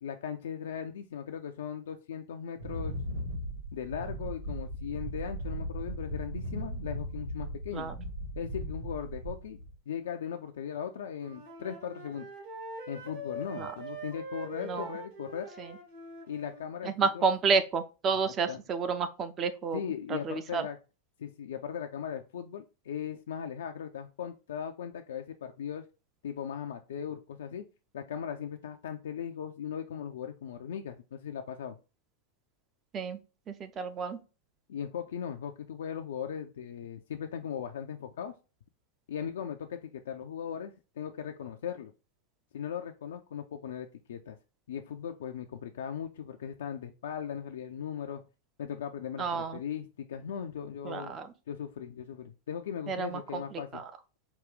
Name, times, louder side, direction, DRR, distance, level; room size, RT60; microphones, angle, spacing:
voice 1, 0.0-2.9 3.7-7.9 8.4-9.6 9.9-12.3 12.9-15.5 16.3-17.3 18.5-18.6 19.7-20.8 21.2-25.9 26.2-27.6 27.9-31.8 34.7-38.3 39.1-41.9 42.5-44.4 44.7-48.2 48.6-51.2 51.5-53.8, left 8 dB, 60° left, 4 dB, 0.3 m, -38 dB
Wind, 2.6-9.7, right 1 dB, 85° right, 2.2 m, -37 dB
Wind instrument woodwind instrument, 11.1-16.7, right 1 dB, 60° right, 2.0 m, -43 dB
voice 2, 14.6-15.0 15.6-15.7 16.8-19.8 20.1-20.7 32.9-33.2 33.5-34.2 49.2-49.6 50.8-51.3 52.9-53.8, right 5 dB, 25° right, 9 dB, 0.6 m, -30 dB
4.8 x 2.4 x 3.5 m, 0.31 s
figure-of-eight pair, 90°, 0 cm